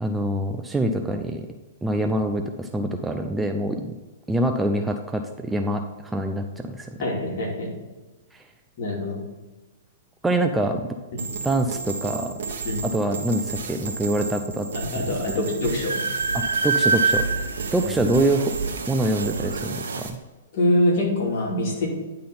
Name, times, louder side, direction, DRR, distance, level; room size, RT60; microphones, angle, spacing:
voice 1, 0.0-1.5 1.8-3.9 4.3-6.9 10.2-10.9 11.4-12.3 12.8-14.7 16.3-18.5 18.9-20.2, right 1 dB, 10° right, 5 dB, 0.5 m, -25 dB
voice 2, 7.0-7.7 8.8-9.2 11.1-11.3 12.6-12.8 14.7-16.0 17.8-18.0 20.5-21.9, left 1 dB, 55° left, -2 dB, 2.7 m, -24 dB
sound 1, 11.2-20.1, right 5 dB, 60° right, 1.3 m, -33 dB
Train, 15.0-15.1 15.4-20.0, right 4 dB, 85° right, 0.6 m, -26 dB
10.0 x 3.8 x 5.7 m, 1.2 s
figure-of-eight pair, 115°, 0 cm